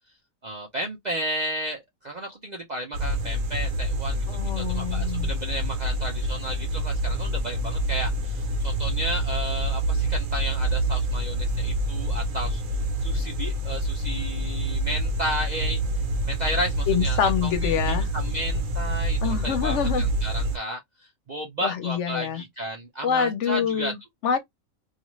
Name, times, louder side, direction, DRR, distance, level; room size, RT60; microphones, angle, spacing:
voice 1, 0.4-4.2 4.6-12.6 13.0-15.8 16.3-20.8 21.3-23.9, right 1 dB, 55° right, 0.5 m, -33 dB
sound 1, 2.9-20.6, right 1 dB, 85° right, 1.1 m, -27 dB
voice 2, 4.3-5.3 16.9-18.1 19.2-20.1 21.6-22.4 23.0-24.4, left 7 dB, 65° left, 0.9 m, -26 dB
2.4 x 2.4 x 3.0 m
omnidirectional pair, 1.4 m